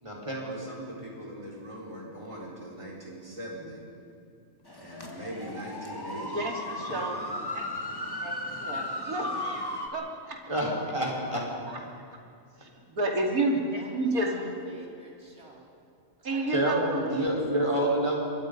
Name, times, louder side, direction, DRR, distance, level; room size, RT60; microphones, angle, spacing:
voice 1, 0.0-3.8 4.8-6.4 6.9-7.3 7.9-8.6 10.5-11.5 16.5-18.2, right 1 dB, 20° right, -2 dB, 4.5 m, -32 dB
sound 1, 4.7-9.9, left 1 dB, 15° left, 2.0 m, -35 dB
voice 2, 6.1-7.7 8.0-10.4 12.6-14.5 16.2-16.9, right 2 dB, 80° right, 0 dB, 3.2 m, -31 dB
voice 3, 13.7-15.7 16.2-16.7 17.2-17.3, right 2 dB, 45° right, -2 dB, 3.7 m, -51 dB
25.5 x 22.0 x 5.3 m, 2.5 s
omnidirectional pair, 1.5 m